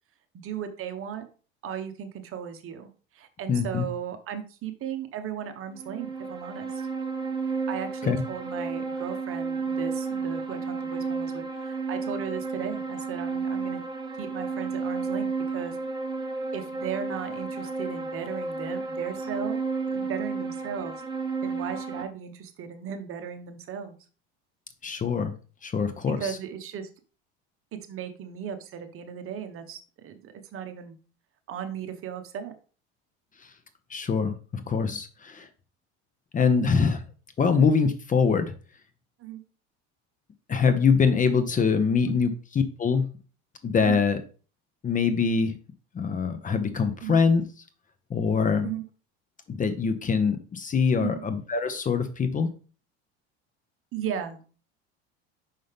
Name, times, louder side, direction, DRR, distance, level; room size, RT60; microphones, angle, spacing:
voice 1, 0.3-1.2 1.6-6.9 7.5-13.8 14.2-15.8 16.5-19.6 19.9-20.9 21.4-23.9 26.2-26.9 27.7-31.0 31.5-32.5 37.5-37.7 39.2-39.4 42.1-42.3 43.8-44.0 47.0-47.2 48.6-48.8 51.0-51.2 53.9-54.5, right 8 dB, 45° right, 8 dB, 1.1 m, -36 dB
voice 2, 3.5-3.8 8.0-8.2 24.8-25.3 25.6-26.2 33.9-35.5 36.3-37.0 37.4-38.5 40.5-43.1 43.6-44.2 44.8-45.6 45.9-47.4 48.1-48.7 49.5-52.5, left 5 dB, 25° left, 10 dB, 0.8 m, -24 dB
sound 1, 5.7-22.0, right 4 dB, 15° right, 1.3 m, -32 dB
5.6 x 5.4 x 3.4 m, 0.37 s
supercardioid pair, 110°, 31 cm